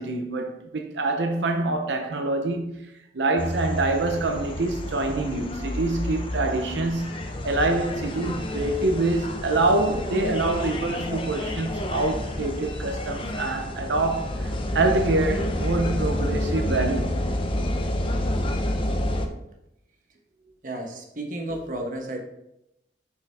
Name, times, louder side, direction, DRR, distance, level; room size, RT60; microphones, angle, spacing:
voice 1, 0.0-2.8 3.1-7.2 7.4-17.1, right 2 dB, 90° right, 0.6 m, -25 dB
sound 1, 3.4-19.3, left 1 dB, 30° left, 0.6 m, -29 dB
voice 2, 20.6-22.2, right 1 dB, 50° right, 1.1 m, -33 dB
6.1 x 5.4 x 3.4 m
head